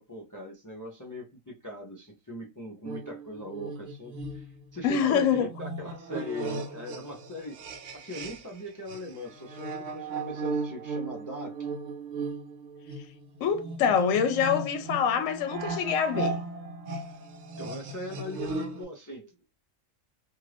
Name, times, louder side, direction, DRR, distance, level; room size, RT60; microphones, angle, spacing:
voice 1, 0.0-7.6 7.9-11.7 17.6-19.3, left 1 dB, 20° left, 0.5 m, -40 dB
sound 1, 2.8-8.6 8.9-18.8, right 3 dB, 70° right, 0.9 m, -37 dB
voice 2, 4.8-5.5 13.4-16.4, left 7 dB, 75° left, 0.9 m, -25 dB
2.6 x 2.5 x 3.3 m
omnidirectional pair, 1.4 m